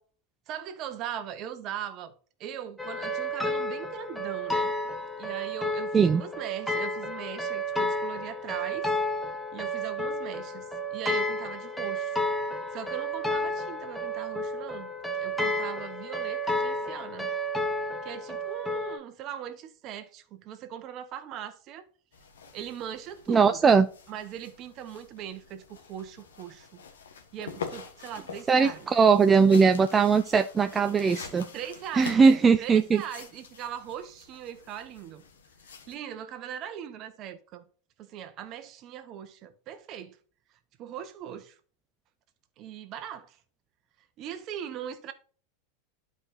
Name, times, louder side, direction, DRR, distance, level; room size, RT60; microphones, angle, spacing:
voice 1, 0.5-2.1 2.4-4.7 5.2-8.9 9.5-12.2 12.7-14.9 15.2-17.3 18.0-21.9 22.5-23.6 24.1-26.8 27.3-28.9 31.5-35.2 35.9-37.7 38.0-40.2 40.8-41.6 42.6-43.4 44.2-45.1, right 9 dB, 45° right, 1.3 m, -40 dB
sound 1, 2.8-19.0, equal, 5° left, 1.3 m, -31 dB
sound 2, 22.1-35.9, left 6 dB, 80° left, 1.5 m, -46 dB
voice 2, 23.3-23.9 28.5-31.4 31.9-33.0, right 5 dB, 20° right, 0.5 m, -20 dB
11.5 x 4.9 x 2.9 m
hypercardioid pair, 95°, 0 cm